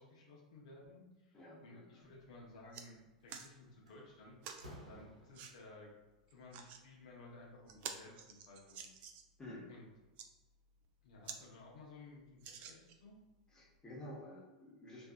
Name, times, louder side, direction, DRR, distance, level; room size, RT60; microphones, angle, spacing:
voice 1, 0.0-4.4 4.9-5.9 6.3-8.9 9.7-9.9 11.0-13.2, left 2 dB, 65° left, -2 dB, 0.6 m, -56 dB
voice 2, 1.3-2.0 9.4-9.7 13.5-15.1, left 1 dB, 20° left, -3 dB, 0.8 m, -51 dB
sound 1, 2.0-2.2 2.5-2.9 3.3-3.5 4.4-4.7 5.3-5.5 6.3-6.8 7.3-7.4 7.7-9.4 10.0-10.3 10.8-10.9 11.2-11.4 11.8-11.9 12.4-13.1 13.8-13.9, right 7 dB, 45° right, 0.3 m, -49 dB
Slam, 3.2-3.4 3.9-5.7, equal, 90° right, 0.7 m, -55 dB
2.6 x 2.3 x 2.4 m, 1.1 s
hypercardioid pair, 95°, 4 cm